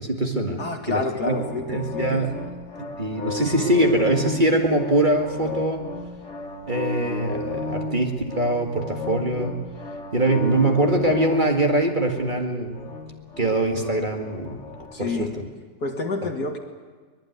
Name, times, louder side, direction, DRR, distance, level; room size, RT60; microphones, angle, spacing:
voice 1, 0.0-0.6 0.9-1.4 1.7-2.3 3.0-5.8 6.7-9.6 10.1-12.8 13.4-14.6 15.0-15.5, right 1 dB, 30° right, 3 dB, 2.1 m, -23 dB
voice 2, 0.6-2.2 14.9-15.3 15.8-16.6, left 3 dB, 65° left, 3 dB, 3.1 m, -28 dB
sound 1, 1.2-15.3, left 2 dB, 45° left, 2.7 m, -33 dB
23.5 x 21.0 x 9.6 m, 1.5 s
omnidirectional pair, 1.8 m